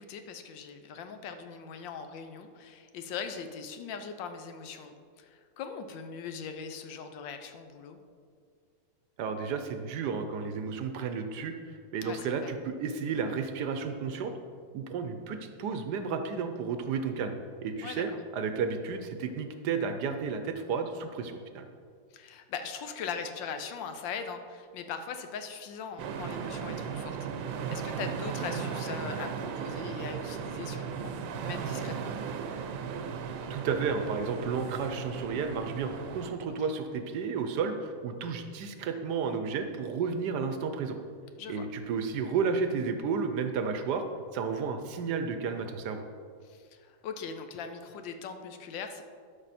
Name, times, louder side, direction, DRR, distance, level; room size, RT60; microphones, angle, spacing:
voice 1, 0.0-8.0 12.0-12.6 17.8-18.0 22.1-31.1 31.4-32.2 36.6-36.7 41.4-41.7 46.4-49.0, left 6 dB, 80° left, 7 dB, 1.4 m, -40 dB
voice 2, 9.2-11.5 11.9-14.3 14.7-21.7 33.5-41.0 41.5-44.0 44.3-46.0, right 5 dB, 70° right, 7 dB, 1.1 m, -32 dB
sound 1, 26.0-36.3, right 6 dB, 85° right, 1.4 m, -36 dB
12.0 x 5.6 x 4.1 m, 2.2 s
omnidirectional pair, 2.0 m